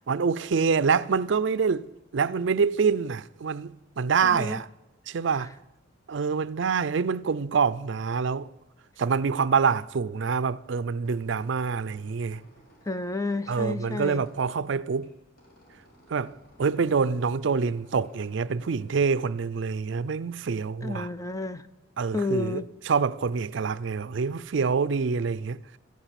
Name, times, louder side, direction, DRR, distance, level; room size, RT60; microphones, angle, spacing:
voice 1, 0.1-1.9 2.1-4.7 5.1-5.5 6.1-8.5 9.0-12.4 13.5-15.1 16.1-16.3 16.6-21.1 22.0-22.6 22.9-25.6, right 5 dB, 65° right, 0.5 m, -26 dB
voice 2, 4.2-4.6 5.4-5.5 12.9-14.2 20.8-21.6 22.1-22.7, left 3 dB, 15° left, 0.5 m, -31 dB
Squeak, 11.0-20.3, equal, 50° left, 4.8 m, -58 dB
15.0 x 10.0 x 8.2 m
head